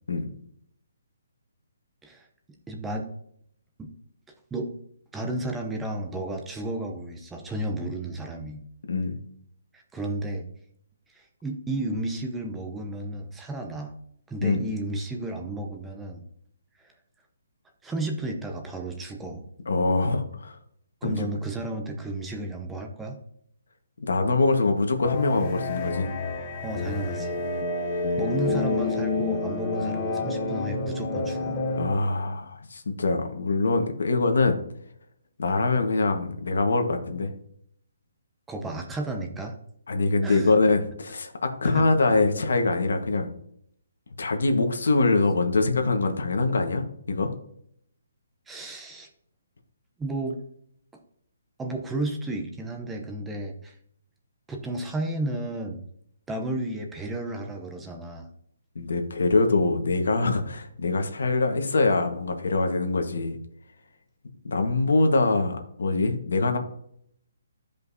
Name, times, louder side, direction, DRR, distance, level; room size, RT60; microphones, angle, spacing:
voice 1, 2.7-3.1 3.8-3.9 4.5-4.7 5.1-8.6 9.7-10.4 11.1-14.0 14.3-16.2 16.8-16.9 17.8-19.4 21.0-23.2 26.6-27.4 28.2-31.6 38.5-39.6 40.2-40.5 41.6-41.9 48.5-49.1 50.0-50.4 51.6-53.7 54.5-55.8 56.3-58.3, right 2 dB, 5° right, 3 dB, 0.7 m, -33 dB
voice 2, 19.7-20.6 21.0-21.2 24.0-26.1 31.7-34.6 35.4-37.3 39.9-43.3 44.2-47.3 58.7-63.4 64.4-66.6, left 3 dB, 80° left, 5 dB, 1.4 m, -24 dB
sound 1, 25.0-31.9, left 3 dB, 25° left, 0.8 m, -28 dB
13.0 x 5.2 x 2.8 m, 0.69 s
hypercardioid pair, 165°, 0 cm